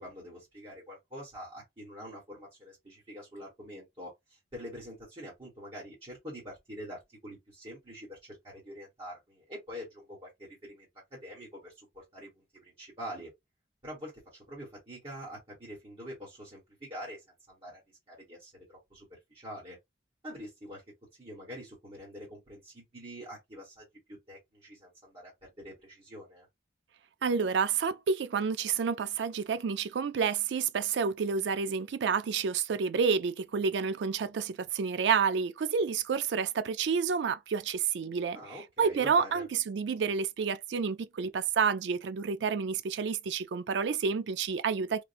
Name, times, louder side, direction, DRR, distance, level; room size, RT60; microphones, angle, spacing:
voice 1, 0.0-10.3 10.6-13.3 13.8-17.8 18.1-19.8 20.2-20.8 21.2-25.3 25.6-26.5 38.3-39.4, equal, 30° right, 1.6 m, -45 dB
voice 2, 27.2-38.4 38.8-45.0, right 6 dB, 85° right, 0.4 m, -29 dB
3.6 x 2.4 x 2.5 m
head